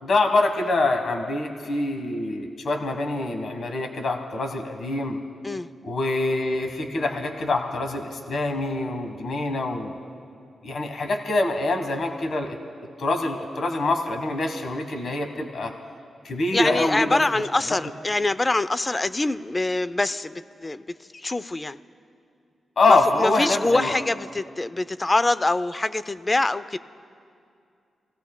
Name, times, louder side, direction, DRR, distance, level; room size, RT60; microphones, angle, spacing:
voice 1, 0.0-5.2 5.8-10.0 10.6-12.6 13.0-15.7 16.2-17.2 22.8-24.0, left 2 dB, 65° left, 5 dB, 1.3 m, -25 dB
voice 2, 16.5-20.3 20.6-20.9 21.1-21.8 22.9-26.8, left 2 dB, 25° left, 14 dB, 0.4 m, -24 dB
28.0 x 16.5 x 2.2 m, 2.4 s
cardioid pair, 70°, 0 cm